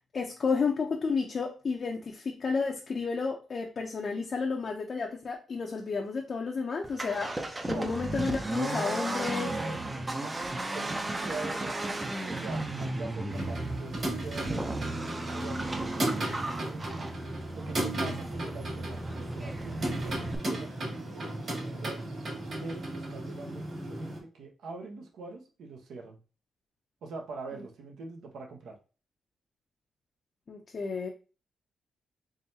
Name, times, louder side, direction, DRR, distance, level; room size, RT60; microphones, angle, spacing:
voice 1, 0.1-7.3 7.7-9.5 27.5-27.6 30.5-31.1, left 4 dB, 40° left, 0 dB, 0.5 m, -31 dB
Accelerating revving vroom, 6.8-20.4, right 2 dB, 15° right, 0.5 m, -35 dB
voice 2, 9.3-10.3 10.7-11.8 12.3-17.1 17.5-22.1 22.6-26.2 27.0-28.8, right 3 dB, 80° right, 2 dB, 0.9 m, -43 dB
sound 1, 13.3-24.2, right 1 dB, 50° right, 2.0 m, -35 dB
3.8 x 3.2 x 2.7 m, 0.34 s
cardioid pair, 140°, 0 cm